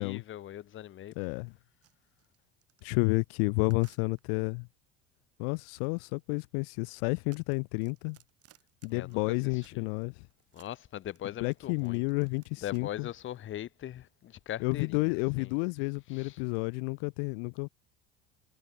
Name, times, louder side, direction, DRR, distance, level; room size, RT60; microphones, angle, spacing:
voice 1, 0.0-1.1 8.9-9.9 10.5-12.0 12.6-15.5 16.1-16.4, left 12 dB, 40° left, 1.1 m, -41 dB
voice 2, 1.2-1.5 2.8-4.7 5.4-8.2 8.8-10.2 11.4-13.1 14.6-17.7, left 40 dB or more, 65° left, 1.0 m, -31 dB
sound 1, 1.8-4.5 5.4-10.0 10.3-13.4, right 12 dB, 45° right, 6.5 m, -64 dB
hypercardioid pair, 70°, 32 cm